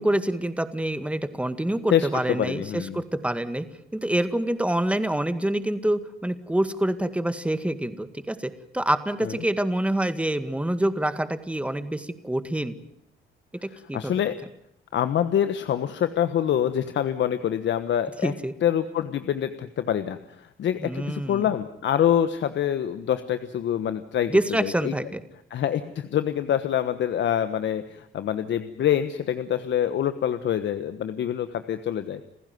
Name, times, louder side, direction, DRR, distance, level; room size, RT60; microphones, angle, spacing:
voice 1, 0.0-3.7 3.9-12.8 13.9-14.1 18.2-18.5 20.8-21.5 24.3-25.2, right 1 dB, 5° right, 10 dB, 1.9 m, -26 dB
voice 2, 1.9-3.0 9.2-9.4 13.7-14.4 14.9-18.3 18.6-24.9 25.5-32.2, left 10 dB, 65° left, 10 dB, 1.3 m, -26 dB
28.5 x 15.5 x 9.5 m, 0.77 s
cardioid pair, 90°, 20 cm